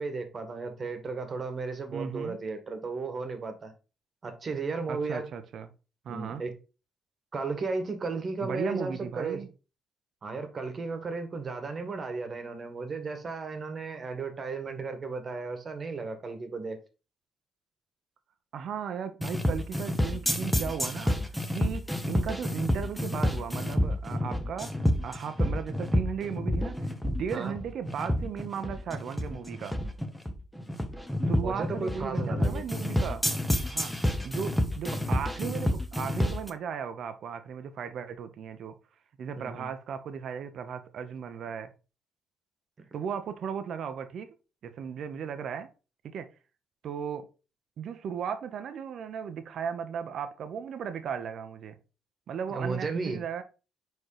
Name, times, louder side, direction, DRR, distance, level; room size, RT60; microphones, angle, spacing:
voice 1, 0.0-3.7 4.2-5.2 6.1-6.5 7.3-9.4 10.2-16.8 27.3-27.5 31.3-32.6 39.4-39.7 52.5-53.2, right 4 dB, 40° right, 1.5 m, -34 dB
voice 2, 1.9-2.4 4.9-5.7 6.0-6.4 8.4-9.5 18.5-21.2 21.5-29.7 31.3-33.2 33.6-33.9 34.2-38.7 39.2-41.7 42.9-44.3 44.6-45.7 46.0-46.3 46.8-47.3 47.8-51.8 52.3-53.4, right 7 dB, 65° right, 0.9 m, -36 dB
sound 1, 19.2-36.5, left 1 dB, 5° left, 1.1 m, -28 dB
4.7 x 4.7 x 4.9 m
cardioid pair, 90°, 0 cm